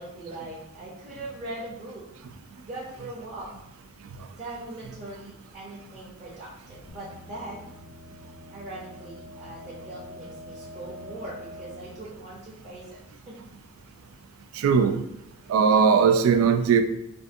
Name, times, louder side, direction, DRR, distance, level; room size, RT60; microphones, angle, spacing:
voice 1, 0.0-2.1 2.6-3.5 4.3-7.7 8.5-13.0 13.3-13.5, right 1 dB, 30° right, 0.7 m, -40 dB
sound 1, 6.9-13.5, left 1 dB, 85° left, 0.5 m, -46 dB
voice 2, 14.5-15.0 15.5-16.8, right 6 dB, 75° right, 0.3 m, -19 dB
3.5 x 2.5 x 2.6 m
head